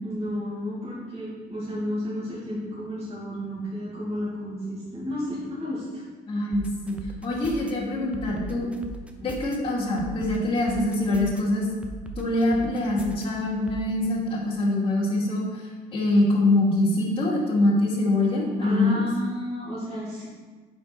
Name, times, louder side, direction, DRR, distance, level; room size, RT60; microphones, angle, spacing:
voice 1, 0.0-6.0 18.6-20.3, equal, 35° right, -9 dB, 2.1 m, -32 dB
voice 2, 6.3-7.0 7.2-8.7 9.2-11.7 12.2-15.6 15.9-19.0, left 2 dB, 30° left, -6 dB, 2.0 m, -24 dB
sound 1, 6.5-7.7 8.1-9.6 10.0-11.4 11.8-13.3 13.7-13.8, right 3 dB, 5° right, 0.6 m, -39 dB
5.2 x 4.5 x 5.3 m, 1.4 s
cardioid pair, 110°, 17 cm